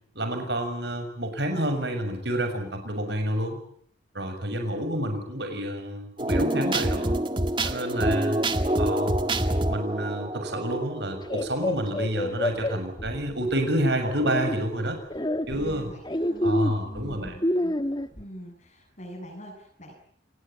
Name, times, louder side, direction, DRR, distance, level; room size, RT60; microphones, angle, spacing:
voice 1, 0.1-3.6 4.1-7.2 7.6-8.4 8.8-9.4 9.7-15.0 15.5-15.9 16.4-17.4, right 1 dB, 60° right, 6 dB, 6.7 m, -29 dB
sound 1, 6.2-11.7, right 1 dB, 25° right, 1.8 m, -26 dB
sound 2, 11.2-13.5 14.0-14.6 15.1-18.2, left 1 dB, 25° left, 1.4 m, -28 dB
voice 2, 15.5-16.6 16.8-17.8 18.2-19.9, equal, 40° left, 1 dB, 7.8 m, -44 dB
29.0 x 19.5 x 8.6 m, 0.64 s
head